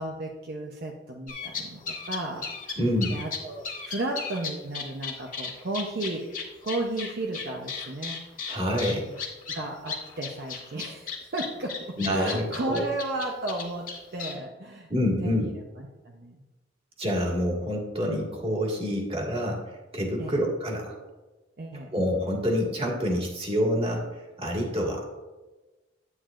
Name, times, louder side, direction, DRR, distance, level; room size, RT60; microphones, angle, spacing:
voice 1, 0.0-2.8 3.1-8.4 9.0-9.1 9.5-14.9 15.2-16.4 20.2-20.4 21.6-21.9, right 2 dB, 60° right, 1 dB, 0.7 m, -34 dB
sound 1, 1.3-14.3, left 5 dB, 45° left, 1.7 m, -35 dB
voice 2, 2.8-3.1 8.5-9.2 12.0-12.8 14.9-15.5 17.0-19.6 19.9-21.0 21.9-25.0, equal, 30° right, -2 dB, 1.8 m, -27 dB
9.7 x 8.9 x 2.5 m, 1.2 s
head